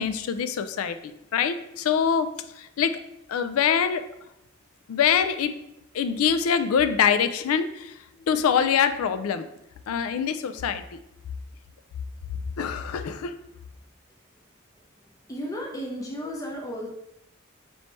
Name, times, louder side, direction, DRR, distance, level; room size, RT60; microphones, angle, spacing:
voice 1, 0.0-2.3 2.6-3.0 3.3-4.0 4.9-5.5 5.9-7.9 8.3-9.5 9.9-11.0 12.6-13.3, left 7 dB, 85° left, 11 dB, 0.3 m, -24 dB
voice 2, 15.3-16.9, equal, 15° left, -2 dB, 0.5 m, -33 dB
3.1 x 3.1 x 4.2 m, 0.84 s
head